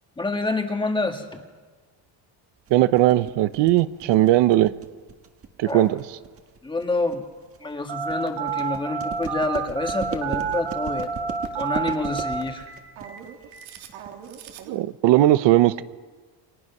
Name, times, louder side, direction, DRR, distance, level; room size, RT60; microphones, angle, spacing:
voice 1, 0.2-1.4 5.6-5.9 6.6-7.2 7.6-11.1 11.5-12.7, left 2 dB, 10° left, 4 dB, 1.7 m, -27 dB
sound 1, 2.7-14.6, right 6 dB, 30° right, 1.6 m, -38 dB
voice 2, 2.7-4.7 5.6-6.0 14.7-15.8, right 15 dB, 70° right, 13 dB, 0.9 m, -18 dB
Telephone, 7.9-14.8, right 6 dB, 85° right, 3.0 m, -30 dB
28.5 x 25.5 x 6.0 m, 1.4 s
cardioid pair, 165°, 45 cm